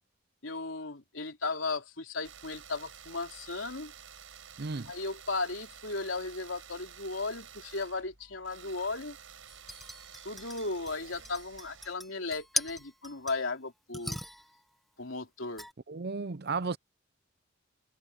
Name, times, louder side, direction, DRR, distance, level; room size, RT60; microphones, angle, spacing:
voice 1, 0.4-3.9 4.9-9.2 10.2-14.2 15.0-15.7, left 3 dB, 75° left, 3.4 m, -36 dB
sound 1, 2.2-11.9, right 8 dB, 75° right, 6.7 m, -51 dB
voice 2, 4.6-4.9 15.9-16.8, right 4 dB, 50° right, 0.6 m, -34 dB
sound 2, 9.5-13.6 13.9-14.6 15.6-15.7, equal, ahead, 1.1 m, -40 dB
head